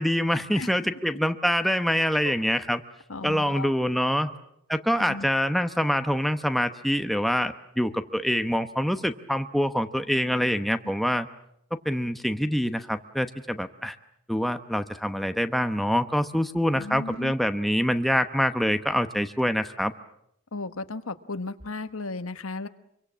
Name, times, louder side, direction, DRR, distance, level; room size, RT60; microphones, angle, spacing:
voice 1, 0.0-2.8 3.2-4.3 4.7-11.3 11.8-13.9 14.3-19.9, equal, ahead, 8 dB, 0.9 m, -25 dB
voice 2, 3.1-3.7 5.0-5.3 16.7-17.3 20.5-22.7, left 3 dB, 90° left, 10 dB, 1.3 m, -35 dB
25.5 x 24.0 x 7.4 m, 0.74 s
head